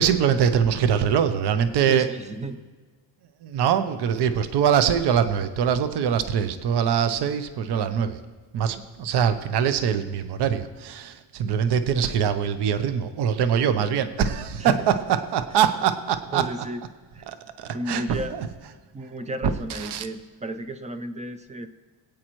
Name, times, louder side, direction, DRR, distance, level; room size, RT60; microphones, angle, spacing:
voice 1, 0.0-2.1 3.4-8.2 8.5-16.4 17.3-18.5 19.7-20.1, right 8 dB, 55° right, 10 dB, 0.8 m, -23 dB
voice 2, 1.9-2.6 14.6-14.9 16.3-16.8 17.1-17.2 17.7-18.4 18.9-21.7, right 1 dB, 15° right, 10 dB, 0.4 m, -33 dB
22.0 x 8.8 x 3.1 m, 1.4 s
cardioid pair, 160°, 48 cm